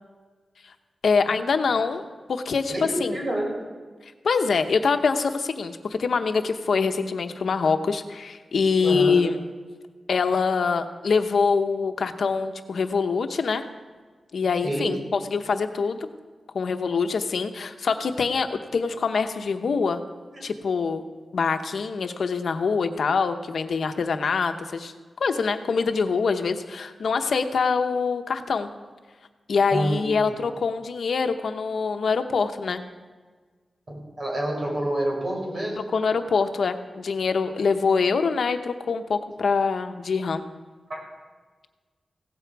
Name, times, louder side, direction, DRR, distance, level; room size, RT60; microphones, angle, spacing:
voice 1, 1.0-2.0 2.3-3.2 4.2-9.4 10.1-13.6 14.3-16.1 16.5-20.0 20.4-21.0 21.3-28.7 29.5-32.8 35.9-40.4, left 5 dB, 80° left, 7 dB, 0.9 m, -24 dB
voice 2, 2.7-3.5 8.8-9.2 14.6-14.9 20.3-20.4 29.7-30.0 30.2-30.3 33.9-35.8 40.9-41.0, right 1 dB, 45° right, -2 dB, 5.6 m, -28 dB
16.5 x 14.0 x 4.7 m, 1.4 s
wide cardioid pair, 125°, 0 cm